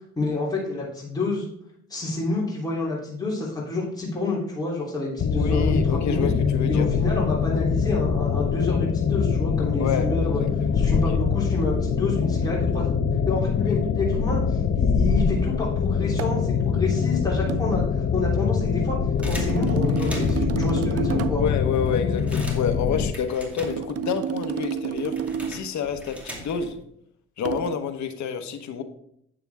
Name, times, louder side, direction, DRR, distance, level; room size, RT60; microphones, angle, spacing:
voice 1, 0.2-1.5 1.9-6.3 6.7-10.4 10.7-13.0 13.3-19.0 19.2-21.4, left 2 dB, 15° left, -5 dB, 3.2 m, -28 dB
sound 1, 5.2-23.1, left 6 dB, 40° left, 0.7 m, -24 dB
voice 2, 5.4-6.9 9.7-10.1 10.4-11.2 13.6-13.8 21.4-25.1 25.5-26.8 27.4-28.8, left 7 dB, 65° left, 6 dB, 1.2 m, -28 dB
sound 2, 16.2-16.5 17.5-17.7 19.2-21.5 23.6-25.7 27.5-27.8, right 8 dB, 50° right, 0.5 m, -30 dB
sound 3, 19.2-20.6 21.2-21.3 21.5-24.2 24.4-26.8, equal, 5° right, 2.3 m, -40 dB
8.9 x 6.9 x 3.5 m, 0.71 s
cardioid pair, 90°, 30 cm